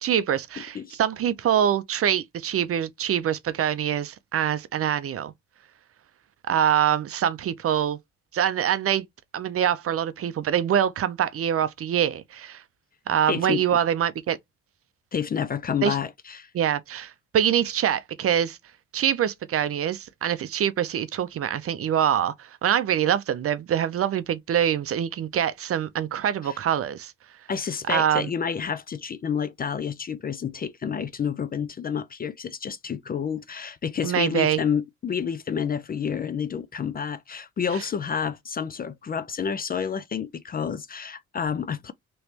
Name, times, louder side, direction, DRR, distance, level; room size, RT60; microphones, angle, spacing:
voice 1, 0.0-5.3 6.5-8.0 8.3-9.1 9.3-12.6 13.1-14.4 15.8-16.0 16.5-18.6 18.9-27.1 27.9-28.3 34.0-34.6, right 9 dB, 50° right, 0.5 m, -24 dB
voice 2, 0.6-1.0 13.3-13.6 15.1-16.5 26.4-26.6 27.5-41.9, left 7 dB, 30° left, 0.4 m, -29 dB
3.2 x 3.0 x 2.8 m
cardioid pair, 90°, 30 cm